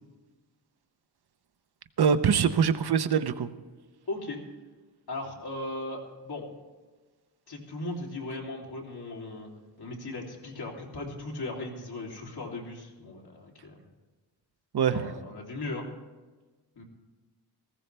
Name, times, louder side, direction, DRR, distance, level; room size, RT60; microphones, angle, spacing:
voice 1, 2.0-3.5 14.7-15.1, right 7 dB, 65° right, 10 dB, 0.9 m, -24 dB
voice 2, 4.1-4.4 5.1-6.5 7.5-9.5 9.8-13.8 14.9-15.9 16.7-16.8, left 2 dB, 65° left, -1 dB, 3.2 m, -37 dB
19.0 x 15.5 x 3.4 m, 1.3 s
wide cardioid pair, 125°, 41 cm